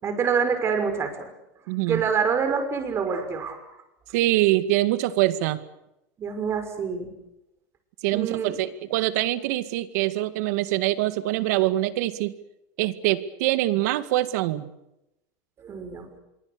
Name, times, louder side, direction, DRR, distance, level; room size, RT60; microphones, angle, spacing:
voice 1, 0.0-1.3 1.9-3.6 6.2-7.1 8.1-8.6 15.6-16.2, right 6 dB, 30° right, 7 dB, 6.0 m, -26 dB
voice 2, 1.7-2.0 4.1-5.6 8.0-12.3 12.8-14.7, right 16 dB, 70° right, 12 dB, 2.1 m, -24 dB
26.5 x 24.0 x 6.9 m, 0.87 s
supercardioid pair, 140°, 9 cm